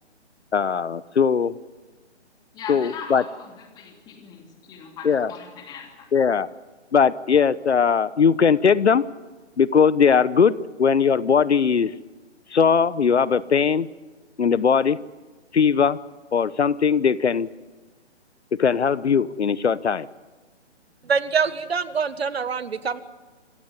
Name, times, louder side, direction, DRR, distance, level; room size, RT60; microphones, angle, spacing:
voice 1, 0.5-1.5 2.7-3.2 5.0-5.3 6.1-6.5 6.9-9.0 9.6-11.9 12.5-13.9 14.4-15.0 15.5-16.0 16.3-17.5 18.5-20.1, left 6 dB, 70° left, 18 dB, 1.0 m, -19 dB
voice 2, 2.5-6.1, left 6 dB, 10° left, 3 dB, 2.8 m, -39 dB
voice 3, 21.0-23.0, right 5 dB, 60° right, 14 dB, 1.6 m, -25 dB
27.0 x 16.0 x 9.5 m, 1.3 s
figure-of-eight pair, 150°, 35 cm